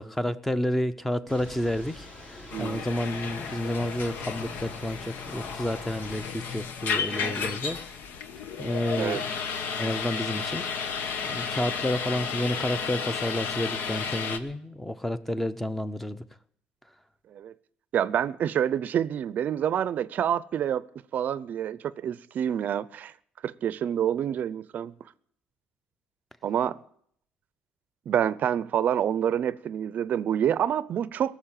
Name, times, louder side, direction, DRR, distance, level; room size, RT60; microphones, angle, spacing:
voice 1, 0.0-7.8 8.6-9.4 9.8-10.7 11.2-16.2, left 1 dB, 5° left, 0.8 m, -30 dB
Thunder / Rain, 1.3-6.3, left 1 dB, 40° left, 3.6 m, -45 dB
sound 1, 2.5-14.4, left 6 dB, 70° left, 1.2 m, -33 dB
voice 2, 2.5-2.9 9.0-9.2 17.3-17.5 17.9-20.8 21.1-23.1 23.4-24.9 26.4-26.8 28.1-31.4, right 9 dB, 55° right, 0.6 m, -27 dB
17.5 x 7.3 x 9.0 m
cardioid pair, 110°, 3 cm